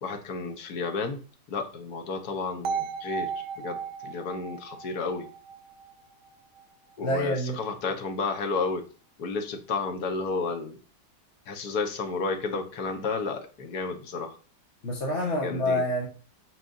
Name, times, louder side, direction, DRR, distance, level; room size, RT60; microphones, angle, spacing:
voice 1, 0.0-1.2 1.5-3.3 3.6-3.8 4.0-5.3 7.0-8.8 9.2-10.8 11.5-14.3 15.4-15.8, left 4 dB, 70° left, 5 dB, 1.6 m, -31 dB
sound 1, 2.6-6.6, right 6 dB, 85° right, 1.3 m, -35 dB
voice 2, 7.0-7.6 14.8-16.1, left 1 dB, 45° left, -2 dB, 1.5 m, -27 dB
9.1 x 5.3 x 2.6 m, 0.38 s
omnidirectional pair, 1.7 m